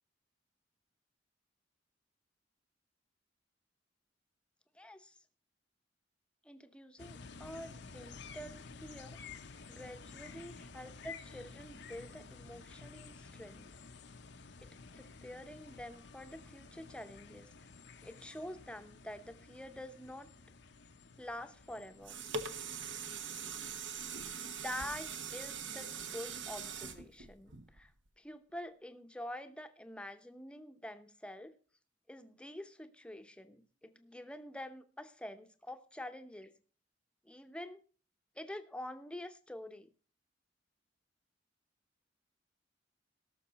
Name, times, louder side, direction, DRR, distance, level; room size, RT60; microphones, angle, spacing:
voice 1, 4.7-5.2 6.4-9.2 9.7-13.7 14.6-17.5 18.0-20.3 21.2-22.2 24.4-27.9 28.2-31.6 32.1-36.5 37.2-37.8 38.3-39.9, left 1 dB, 5° left, 8 dB, 0.8 m, -47 dB
sound 1, 7.0-24.9, left 4 dB, 65° left, 0.8 m, -53 dB
sound 2, 21.7-28.1 28.6-28.7, right 5 dB, 75° right, 1.1 m, -42 dB
18.0 x 6.5 x 4.1 m, 0.39 s
head